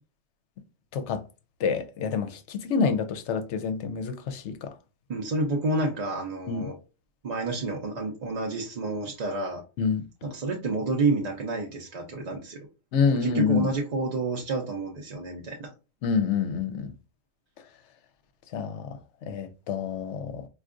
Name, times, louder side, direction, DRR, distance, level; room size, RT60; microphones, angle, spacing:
voice 1, 0.9-1.2 1.6-4.7 6.5-6.7 9.8-10.1 12.9-13.7 16.0-16.9 18.5-20.5, left 5 dB, 70° left, 0.9 m, -27 dB
voice 2, 5.1-6.7 7.2-9.6 10.2-12.6 13.2-15.7, right 3 dB, 45° right, 0.6 m, -29 dB
4.5 x 2.4 x 2.5 m
omnidirectional pair, 1.3 m